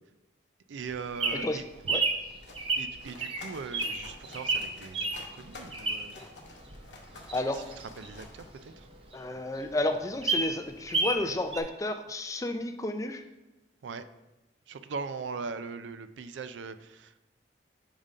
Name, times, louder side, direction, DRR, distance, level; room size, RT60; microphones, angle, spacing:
voice 1, 0.7-1.6 2.8-6.2 7.3-8.9 13.8-14.0 14.7-17.2, right 5 dB, 85° right, 11 dB, 0.4 m, -40 dB
Bird vocalization bird call bird song, 0.8-6.3 6.7-8.9 9.2-9.3 9.6-9.7 10.0-11.2 11.5-11.6, right 3 dB, 30° right, 0.6 m, -31 dB
sound 1, 2.1-9.1, left 3 dB, 70° left, 0.9 m, -50 dB
voice 2, 7.3-7.6 9.1-13.2, left 1 dB, 20° left, 7 dB, 0.4 m, -31 dB
5.1 x 3.7 x 5.3 m, 1.0 s
head